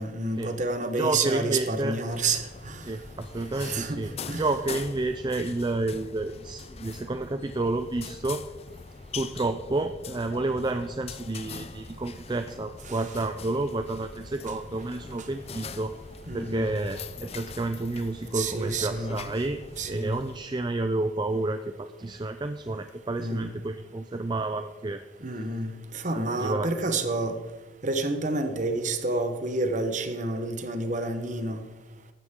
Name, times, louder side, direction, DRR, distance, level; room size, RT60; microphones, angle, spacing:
voice 1, 0.0-2.9 3.6-4.0 4.3-4.4 12.9-13.0 15.2-15.3 16.3-16.7 18.3-19.2 19.8-20.2 23.2-23.5 25.2-27.4 27.8-31.6, right 2 dB, 40° right, 8 dB, 1.1 m, -29 dB
voice 2, 1.0-2.0 2.9-8.4 9.1-15.9 16.3-19.6 19.9-25.0 26.1-26.7, right 2 dB, 25° right, 8 dB, 0.4 m, -30 dB
sound 1, 2.1-20.4, left 4 dB, 30° left, 0.5 m, -42 dB
15.0 x 12.5 x 3.8 m, 1.2 s
head